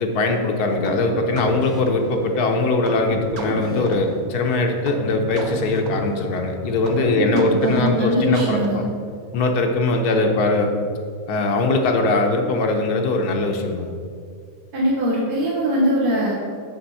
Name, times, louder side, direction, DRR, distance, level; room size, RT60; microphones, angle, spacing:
voice 1, 0.0-8.8 9.3-10.7 11.3-13.9, left 2 dB, 80° left, 3 dB, 1.3 m, -21 dB
sound 1, 0.9-9.1, right 1 dB, 40° right, 0.8 m, -32 dB
voice 2, 7.1-8.8 14.7-16.3, equal, 80° right, -6 dB, 1.8 m, -21 dB
9.5 x 3.5 x 5.4 m, 2.1 s
omnidirectional pair, 1.6 m